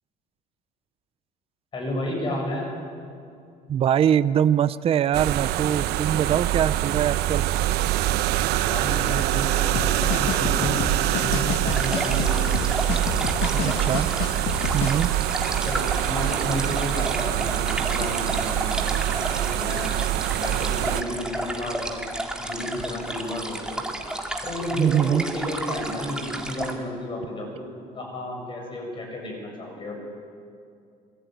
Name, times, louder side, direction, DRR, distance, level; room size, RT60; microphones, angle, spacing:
voice 1, 1.7-2.7 8.7-10.9 11.2-12.6 13.5-13.8 15.6-18.8 19.3-20.0 20.3-22.0 22.4-23.8 24.4-30.0, left 1 dB, 30° left, 1 dB, 7.5 m, -32 dB
voice 2, 3.7-7.4 13.6-14.1 14.7-15.1 24.8-25.2, right 9 dB, 35° right, 15 dB, 0.6 m, -22 dB
sound 1, 5.1-21.0, right 14 dB, 70° right, 1.0 m, -25 dB
sound 2, 9.7-14.9, left 8 dB, 80° left, 1.7 m, -30 dB
sound 3, 11.7-26.7, right 1 dB, 5° right, 2.2 m, -32 dB
26.5 x 21.5 x 9.3 m, 2.4 s
cardioid pair, 155°, 17 cm